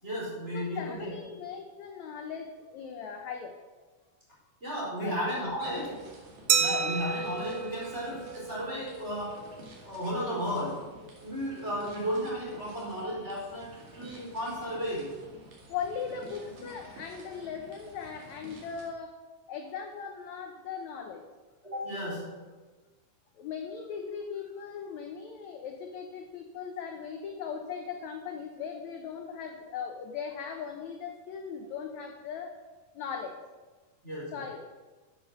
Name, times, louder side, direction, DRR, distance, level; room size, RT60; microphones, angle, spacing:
voice 1, 0.0-1.2 4.6-6.0 6.6-9.5 9.8-10.9 11.2-15.2 21.6-22.4 34.0-34.4, equal, 15° right, -6 dB, 4.4 m, -34 dB
voice 2, 0.5-3.6 5.0-5.2 5.7-6.0 15.7-19.1 19.5-21.2 23.4-32.5 32.9-33.4 34.3-34.6, left 6 dB, 70° left, 4 dB, 1.8 m, -39 dB
sound 1, 5.6-18.9, right 2 dB, 55° right, 3.4 m, -51 dB
Glass, 6.5-9.0, right 7 dB, 75° right, 2.6 m, -30 dB
13.0 x 7.2 x 6.5 m, 1.3 s
omnidirectional pair, 4.3 m